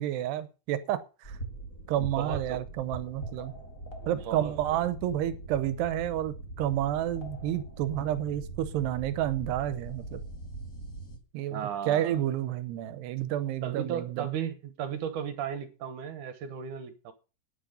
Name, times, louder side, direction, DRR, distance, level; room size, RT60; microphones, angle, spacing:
voice 1, 0.0-1.4 1.9-3.5 4.1-10.2 11.3-11.6 11.9-14.3, right 12 dB, 90° right, 3.0 m, -30 dB
sound 1, 1.2-11.2, right 2 dB, 25° left, 1.8 m, -41 dB
voice 2, 2.0-2.6 4.0-4.5 11.5-12.2 13.6-17.1, right 8 dB, 65° right, 2.2 m, -35 dB
11.5 x 9.8 x 5.3 m
omnidirectional pair, 4.8 m